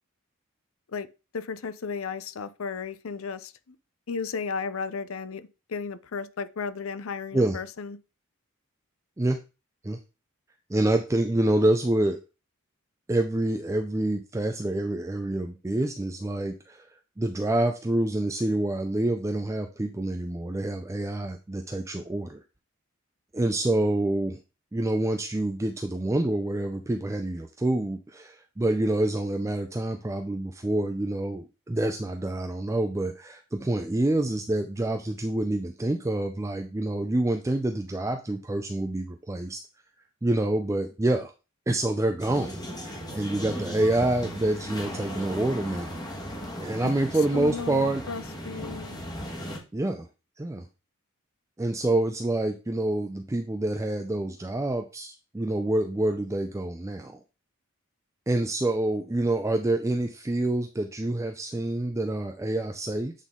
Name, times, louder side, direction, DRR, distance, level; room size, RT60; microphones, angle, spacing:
voice 1, 1.3-3.8 4.1-8.0 46.8-46.9 47.3-49.0, left 5 dB, 75° left, 0.6 m, -34 dB
voice 2, 10.7-12.2 13.1-16.9 17.2-22.4 23.3-24.4 24.7-39.6 40.2-41.3 41.7-46.0 46.6-48.0 49.7-50.1 50.4-50.7 51.6-57.2 58.3-63.1, right 1 dB, 15° right, 0.4 m, -27 dB
sound 1, 42.2-49.6, equal, 20° left, 1.3 m, -37 dB
8.2 x 3.7 x 3.7 m
head